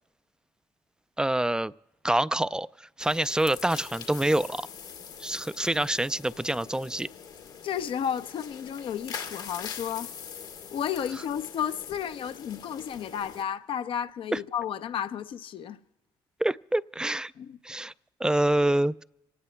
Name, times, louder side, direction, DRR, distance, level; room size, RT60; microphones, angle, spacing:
voice 1, 1.2-1.7 2.0-4.7 5.2-7.1 14.3-14.4 16.4-17.3 17.6-17.9 18.2-19.0, right 1 dB, 10° right, 0.4 m, -26 dB
sound 1, 3.0-13.4, left 7 dB, 85° left, 2.2 m, -43 dB
voice 2, 7.6-10.1 10.7-15.8 17.4-17.6, left 9 dB, 65° left, 0.7 m, -32 dB
26.0 x 18.0 x 2.2 m
supercardioid pair, 60°, 10 cm